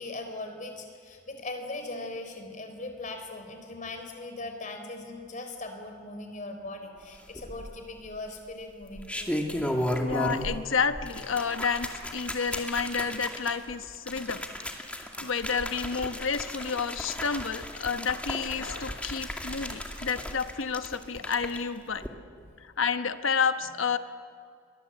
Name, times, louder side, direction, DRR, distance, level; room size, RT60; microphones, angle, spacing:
voice 1, 0.0-9.4, left 2 dB, 40° left, 5 dB, 4.2 m, -39 dB
sound 1, 7.3-8.0 8.8-10.7 10.9-21.6 22.0-22.1, equal, 5° left, 2.3 m, -35 dB
voice 2, 10.0-14.4 14.9-22.0 22.6-24.0, left 5 dB, 85° left, 10 dB, 1.2 m, -30 dB
29.5 x 23.5 x 8.1 m, 2.2 s
head